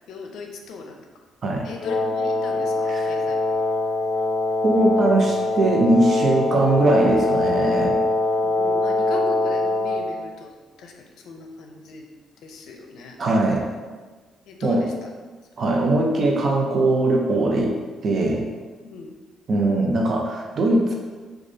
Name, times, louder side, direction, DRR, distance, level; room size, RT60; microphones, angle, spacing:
voice 1, 0.1-1.1 1.6-3.4 8.4-10.5 10.8-12.0 12.4-13.2 14.5-15.1 18.8-19.1, left 4 dB, 80° left, 3 dB, 0.5 m, -38 dB
Wind instrument woodwind instrument, 1.8-10.1, left 2 dB, 45° left, 0.8 m, -23 dB
voice 2, 4.6-8.0 13.2-13.6 14.6-14.8 15.6-17.7 18.0-18.5 19.5-20.9, right 2 dB, 50° right, 0 dB, 0.8 m, -20 dB
6.2 x 2.4 x 2.7 m, 1.4 s
cardioid pair, 90°, 0 cm